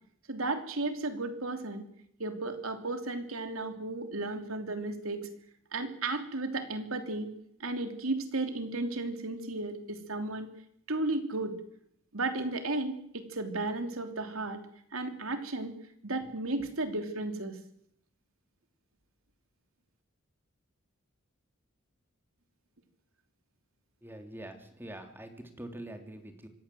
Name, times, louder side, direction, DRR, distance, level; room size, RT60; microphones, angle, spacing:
voice 1, 0.3-1.8 2.2-5.3 5.7-7.3 7.6-10.5 10.9-11.6 12.1-14.6 14.9-15.7 16.0-17.6, right 2 dB, 85° right, 7 dB, 3.2 m, -34 dB
voice 2, 24.0-26.5, right 1 dB, 10° right, 5 dB, 3.1 m, -44 dB
25.5 x 18.5 x 7.8 m, 0.72 s
head